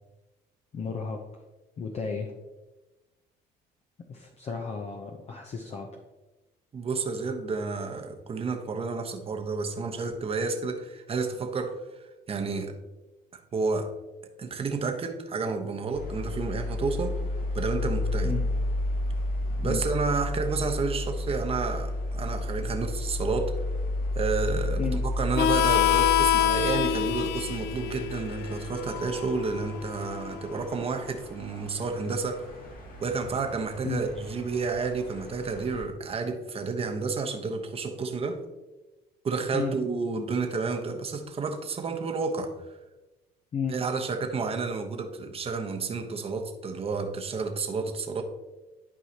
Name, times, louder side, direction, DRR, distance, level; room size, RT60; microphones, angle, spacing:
voice 1, 0.7-1.2 1.8-2.3 4.1-5.9 18.2-18.4 19.6-19.8 24.8-25.0 33.8-34.0 39.5-39.7 43.5-43.8, left 5 dB, 40° left, 2 dB, 0.8 m, -33 dB
voice 2, 6.7-12.7 13.5-13.9 14.4-17.2 17.5-18.3 19.5-23.5 24.1-32.5 33.0-38.4 39.2-42.8 43.7-48.2, right 4 dB, 35° right, 5 dB, 1.0 m, -30 dB
sound 1, 15.9-35.8, left 1 dB, 60° left, 2.1 m, -32 dB
Harmonica, 25.3-30.6, left 12 dB, 85° left, 0.4 m, -27 dB
11.5 x 4.8 x 2.9 m, 1.1 s
cardioid pair, 110°, 17 cm